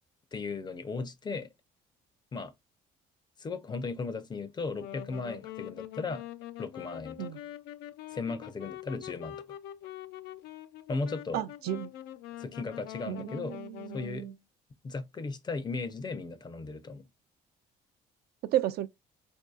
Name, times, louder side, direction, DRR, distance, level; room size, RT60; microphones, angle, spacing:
voice 1, 0.3-1.5 2.3-2.5 3.4-6.2 6.6-7.3 8.1-9.4 10.9-11.4 12.4-13.6 13.9-14.3 14.8-17.1, left 4 dB, 25° left, 0.5 m, -36 dB
Wind instrument woodwind instrument, 4.7-14.4, left 12 dB, 85° left, 0.4 m, -44 dB
voice 2, 11.3-11.9 13.1-14.3 18.4-18.9, right 13 dB, 70° right, 0.4 m, -33 dB
4.3 x 2.6 x 2.3 m
cardioid pair, 110°, 17 cm